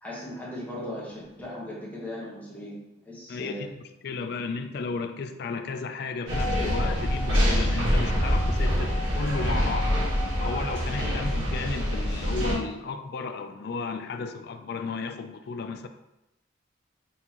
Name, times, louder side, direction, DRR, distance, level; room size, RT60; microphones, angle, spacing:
voice 1, 0.0-2.8 3.0-3.7, left 1 dB, 10° left, -7 dB, 1.2 m, -38 dB
voice 2, 3.3-9.9 10.4-15.9, left 4 dB, 55° left, 7 dB, 0.3 m, -34 dB
sound 1, 6.3-12.6, equal, 70° right, 1.5 m, -25 dB
4.2 x 3.6 x 2.9 m, 0.94 s
head